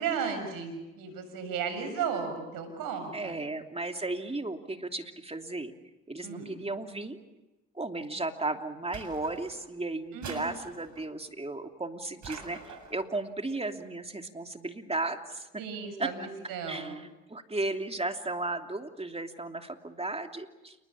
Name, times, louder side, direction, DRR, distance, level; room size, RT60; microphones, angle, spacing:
voice 1, 0.0-3.4 6.2-6.5 10.1-10.5 15.6-17.0, right 6 dB, 80° right, 8 dB, 6.7 m, -34 dB
voice 2, 3.1-5.7 6.1-7.2 7.7-15.6 16.0-16.1 16.7-20.8, right 2 dB, 20° right, 5 dB, 3.0 m, -35 dB
sound 1, 8.9-9.7 10.2-11.1 12.2-13.0, right 5 dB, 60° right, 7.2 m, -45 dB
29.0 x 20.5 x 8.6 m, 1.0 s
supercardioid pair, 60°, 33 cm